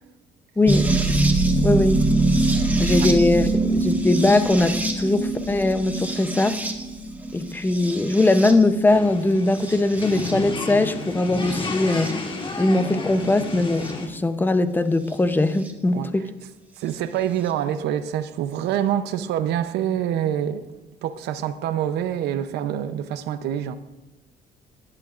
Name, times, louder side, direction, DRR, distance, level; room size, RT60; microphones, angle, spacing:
voice 1, 0.6-0.9 1.6-2.1 2.8-6.6 7.3-12.2 12.6-16.2, left 2 dB, 10° left, 0.8 m, -21 dB
sound 1, 0.7-8.8 9.5-10.3 11.5-12.1 13.8-13.9 15.7-15.8, right 2 dB, 10° right, 1.3 m, -23 dB
sound 2, 8.9-14.1, left 3 dB, 30° left, 1.7 m, -31 dB
voice 2, 16.8-23.8, right 10 dB, 80° right, 0.8 m, -26 dB
21.5 x 11.0 x 2.5 m
cardioid pair, 110°, 17 cm